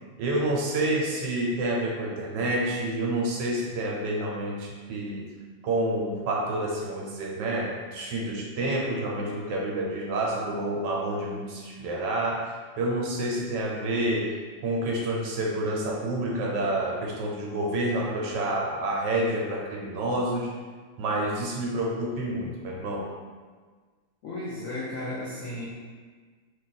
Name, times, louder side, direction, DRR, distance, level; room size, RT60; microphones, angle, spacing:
voice 1, 0.2-5.3 5.6-14.3 14.6-20.5 21.0-23.2, right 1 dB, 75° right, -2 dB, 1.2 m, -28 dB
voice 2, 24.2-25.7, left 1 dB, 75° left, -6 dB, 0.7 m, -34 dB
3.2 x 2.4 x 3.9 m, 1.5 s
omnidirectional pair, 2.0 m